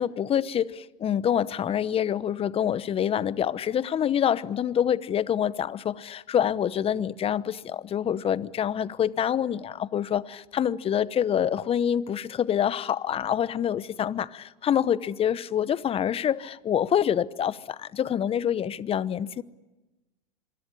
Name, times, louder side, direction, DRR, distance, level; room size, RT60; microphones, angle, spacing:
voice 1, 0.0-19.4, left 9 dB, 30° left, 0.9 m, -26 dB
26.0 x 22.0 x 9.9 m
hypercardioid pair, 100°, 21 cm